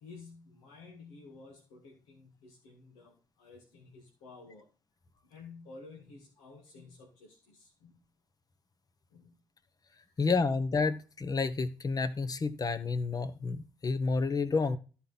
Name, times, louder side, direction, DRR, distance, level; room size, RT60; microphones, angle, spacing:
voice 1, 0.0-4.7 5.2-8.0 9.1-9.4 10.0-10.3, left 4 dB, 80° left, -1 dB, 1.8 m, -52 dB
voice 2, 10.2-14.8, left 4 dB, 40° left, 11 dB, 1.2 m, -30 dB
13.0 x 4.5 x 5.5 m, 0.36 s
hypercardioid pair, 45°, 10 cm